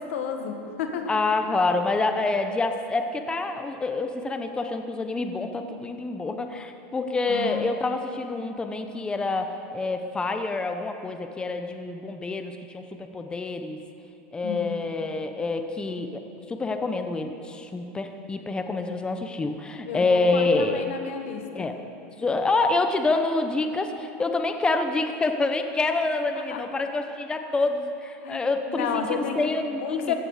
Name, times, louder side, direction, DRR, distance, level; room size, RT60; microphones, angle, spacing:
voice 1, 0.0-1.1 7.3-7.7 14.4-14.8 19.8-21.7 26.3-26.6 28.2-29.4 29.8-30.2, left 7 dB, 85° left, 5 dB, 1.7 m, -32 dB
voice 2, 1.1-12.9 13.1-13.8 14.3-16.2 16.5-20.9 21.5-21.8 22.2-30.1, left 3 dB, 15° left, 6 dB, 0.8 m, -27 dB
16.0 x 15.0 x 5.0 m, 2.7 s
supercardioid pair, 130°, 7 cm